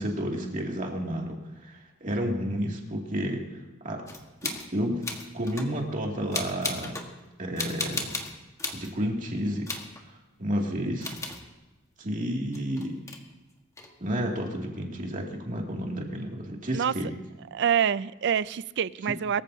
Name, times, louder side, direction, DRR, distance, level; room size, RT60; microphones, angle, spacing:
voice 1, 0.0-4.0 4.4-5.0 5.3-7.0 7.4-8.1 8.7-9.7 10.1-11.2 12.0-13.0 14.0-17.1 19.1-19.2, equal, 40° right, 0 dB, 2.4 m, -31 dB
sound 1, 4.1-4.7 5.0-5.8 6.3-7.1 7.6-8.9 9.7-10.0 11.0-11.5 12.5-13.2 13.8-13.9, left 3 dB, 15° left, 1.4 m, -35 dB
voice 2, 17.5-19.4, right 8 dB, 60° right, 18 dB, 0.4 m, -26 dB
23.0 x 14.5 x 2.7 m, 1.1 s
head